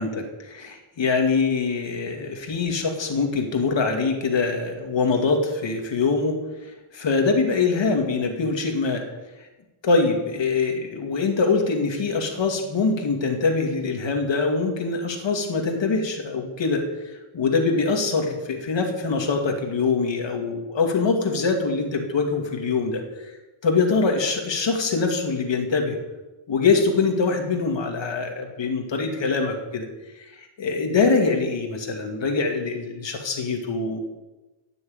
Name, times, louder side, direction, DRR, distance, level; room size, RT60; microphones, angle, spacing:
voice 1, 0.0-6.4 6.9-9.0 9.8-16.8 17.3-23.0 23.3-23.4 23.6-26.0 26.5-29.9 30.4-34.0, left 4 dB, 65° left, 3 dB, 2.5 m, -23 dB
15.5 x 7.0 x 8.8 m, 1.1 s
wide cardioid pair, 110°, 48 cm